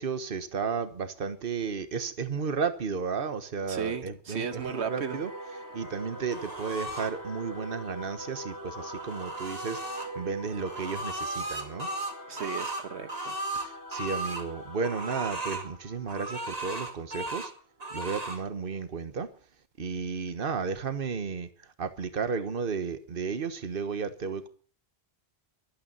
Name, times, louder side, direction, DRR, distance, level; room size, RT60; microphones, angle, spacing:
voice 1, 0.0-5.3 5.7-11.9 13.5-17.5 17.9-19.3 19.8-21.5 21.8-24.5, right 5 dB, 55° right, 1.4 m, -33 dB
voice 2, 3.7-5.2 12.3-13.4, right 7 dB, 80° right, 1.3 m, -35 dB
Singing / Musical instrument, 4.4-17.3, right 1 dB, 15° right, 2.8 m, -44 dB
sound 1, 6.3-7.1 8.5-10.1 10.6-14.5 14.8-15.7 16.1-17.5 17.8-18.4, right 2 dB, 35° right, 2.4 m, -36 dB
23.5 x 9.1 x 5.5 m
omnidirectional pair, 1.1 m